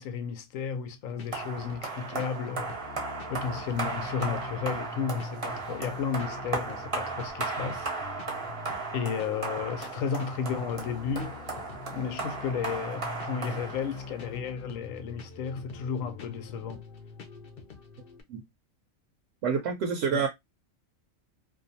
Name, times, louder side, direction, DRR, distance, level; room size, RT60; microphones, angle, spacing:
voice 1, 0.0-2.9 3.3-7.9 8.9-11.4 11.9-16.9 20.1-20.3, left 7 dB, 90° left, 1.0 m, -33 dB
sound 1, 1.1-18.2, left 4 dB, 60° left, 0.6 m, -44 dB
sound 2, 1.3-14.3, right 4 dB, 35° right, 0.6 m, -36 dB
voice 2, 19.4-20.3, right 6 dB, 75° right, 0.9 m, -27 dB
2.5 x 2.2 x 2.6 m
omnidirectional pair, 1.3 m